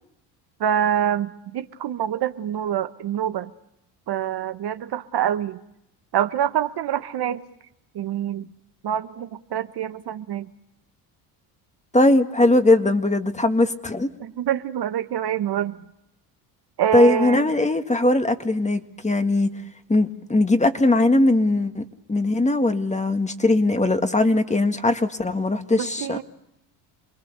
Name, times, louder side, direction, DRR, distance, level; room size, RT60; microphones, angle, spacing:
voice 1, 0.6-3.5 4.1-5.6 6.1-7.4 7.9-8.4 8.8-10.5 14.2-15.8 16.8-17.5 25.7-26.2, right 10 dB, 55° right, 10 dB, 1.2 m, -26 dB
voice 2, 11.9-14.1 16.9-19.5 19.9-21.8 22.1-26.2, left 2 dB, 15° left, 8 dB, 2.0 m, -20 dB
28.0 x 21.5 x 6.8 m, 0.82 s
supercardioid pair, 75°, 48 cm